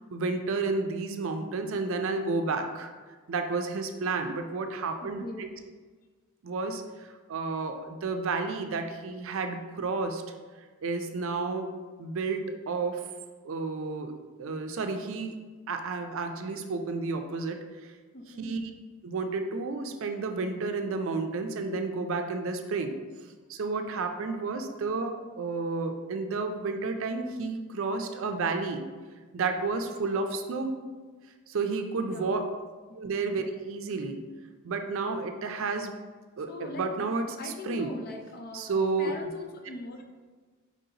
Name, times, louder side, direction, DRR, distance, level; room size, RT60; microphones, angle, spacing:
voice 1, 0.1-2.9 3.3-5.5 6.4-10.2 10.8-11.7 12.0-13.1 13.4-14.1 14.4-15.4 15.7-17.9 18.4-18.7 19.0-23.0 23.5-28.9 29.3-30.8 31.5-32.5 33.0-34.2 34.6-35.9 36.4-37.9 38.5-39.1, right 3 dB, 70° right, 6 dB, 0.4 m, -31 dB
voice 2, 5.0-5.6 18.1-18.5 32.0-32.5 32.9-33.0 36.5-36.9 37.4-40.0, left 1 dB, 50° left, 3 dB, 0.5 m, -41 dB
4.7 x 3.9 x 2.8 m, 1.4 s
head